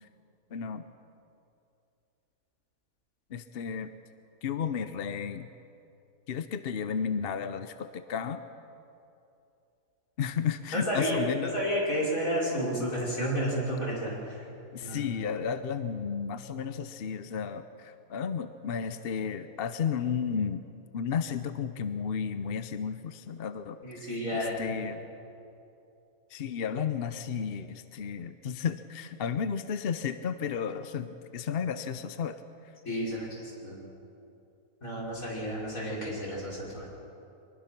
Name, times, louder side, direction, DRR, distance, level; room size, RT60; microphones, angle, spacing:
voice 1, 0.5-0.8 3.3-3.9 4.4-5.5 6.3-8.4 10.2-11.6 14.7-20.6 20.9-24.1 24.3-25.0 26.3-32.4, left 7 dB, 50° left, 11 dB, 0.8 m, -33 dB
voice 2, 10.7-11.2 11.5-14.1 14.8-15.1 23.8-24.8 32.8-33.8 34.8-36.9, equal, 70° left, -5 dB, 5.7 m, -31 dB
23.5 x 20.5 x 6.0 m, 2.7 s
omnidirectional pair, 1.5 m